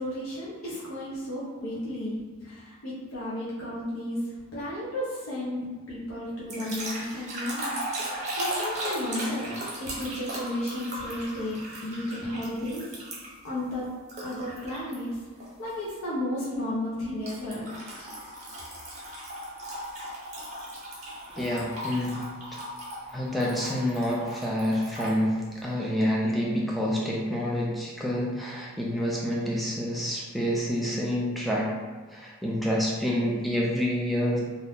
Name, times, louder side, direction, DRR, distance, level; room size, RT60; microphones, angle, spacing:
voice 1, 0.0-4.2 4.5-9.5 9.8-12.8 13.4-13.9 14.2-15.1 15.6-17.7, left 1 dB, 75° left, -8 dB, 0.8 m, -33 dB
sound 1, 6.5-13.5 14.1-15.0 15.4-15.7 17.3-25.2, right 1 dB, 30° right, 0.7 m, -37 dB
voice 2, 21.3-22.2 23.1-31.7 32.1-34.4, equal, ahead, -4 dB, 0.4 m, -28 dB
2.6 x 2.4 x 3.4 m, 1.5 s
head